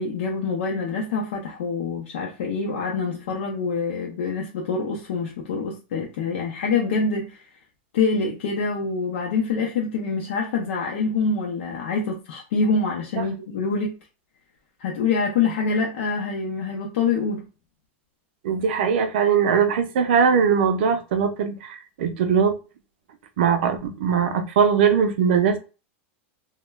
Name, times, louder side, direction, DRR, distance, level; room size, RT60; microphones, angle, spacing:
voice 1, 0.0-7.4 7.9-14.0 14.8-17.5, left 4 dB, 70° left, 0.5 m, -25 dB
voice 2, 18.4-22.6 23.4-25.6, right 6 dB, 60° right, 0.5 m, -20 dB
2.2 x 2.1 x 3.1 m
supercardioid pair, 180°, 7 cm